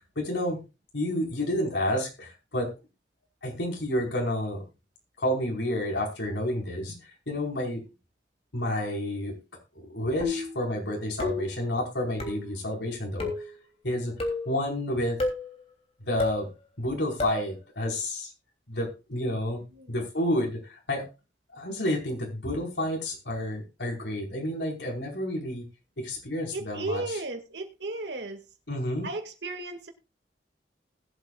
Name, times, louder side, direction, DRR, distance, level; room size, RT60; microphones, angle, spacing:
voice 1, 0.1-0.6 0.9-2.7 3.4-4.6 5.2-7.8 8.5-9.3 9.7-13.3 13.8-14.1 14.4-15.2 16.1-16.5 16.8-18.3 18.7-19.6 19.9-21.0 21.5-25.6 26.0-27.2 28.7-29.1, left 1 dB, 85° left, -1 dB, 4.7 m, -30 dB
sound 1, 10.2-10.6 11.2-11.6 12.2-12.5 13.2-13.5 14.2-14.5 15.2-15.5 16.2-16.5 17.2-17.5, left 3 dB, 35° left, 3.1 m, -30 dB
voice 2, 19.7-20.1 26.5-28.4 29.0-29.9, right 2 dB, 80° right, 5 dB, 2.2 m, -35 dB
20.5 x 8.1 x 2.4 m, 0.29 s
head